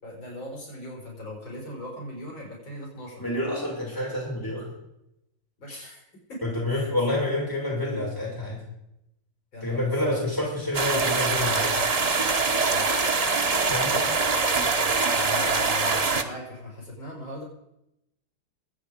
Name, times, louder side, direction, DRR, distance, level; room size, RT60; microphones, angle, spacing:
voice 1, 0.0-3.2 5.6-6.0 6.3-6.4 6.7-6.9 9.5-9.9 12.7-12.9 15.1-17.4, left 1 dB, 65° left, -2 dB, 6.2 m, -38 dB
voice 2, 3.2-4.7 5.7-5.9 6.4-8.6 9.6-11.7 13.7-14.0, left 1 dB, 10° left, -5 dB, 6.6 m, -28 dB
sound 1, 10.7-16.2, right 4 dB, 55° right, 0.4 m, -24 dB
23.0 x 9.4 x 5.1 m, 0.84 s
omnidirectional pair, 2.3 m